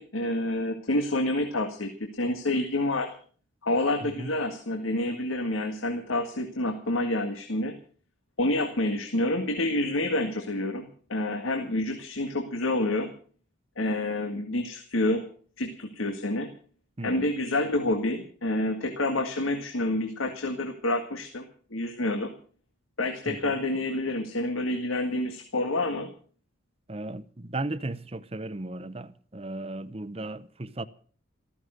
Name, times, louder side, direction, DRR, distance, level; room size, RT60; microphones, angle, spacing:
voice 1, 0.0-1.9 2.2-3.1 3.6-7.7 8.4-13.1 13.8-15.3 15.6-16.5 17.0-21.4 21.7-22.3 23.0-26.1, left 1 dB, 90° left, 1.9 m, -28 dB
voice 2, 4.0-4.3 17.0-17.3 23.3-23.6 26.9-30.9, right 2 dB, 30° right, 0.7 m, -36 dB
14.5 x 14.5 x 6.4 m
head